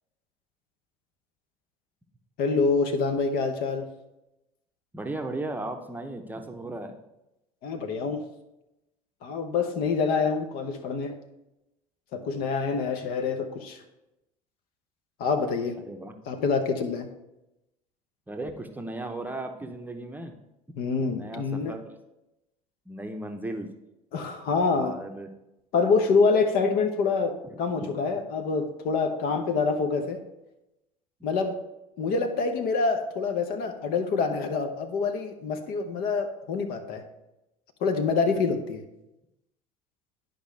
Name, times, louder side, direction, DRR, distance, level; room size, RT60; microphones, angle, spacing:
voice 1, 2.4-3.9 7.6-8.2 9.2-11.1 12.1-13.8 15.2-15.8 16.3-17.1 20.8-21.7 24.1-24.9 25.7-30.2 31.2-31.6 32.0-37.0 37.8-38.8, left 4 dB, 55° left, 6 dB, 0.9 m, -26 dB
voice 2, 4.9-7.0 15.8-16.1 18.3-20.3 21.1-21.9 22.9-23.7 24.7-25.3 27.4-28.0, right 2 dB, 10° right, 4 dB, 0.8 m, -36 dB
10.0 x 5.2 x 3.3 m, 0.92 s
figure-of-eight pair, 65°, 19 cm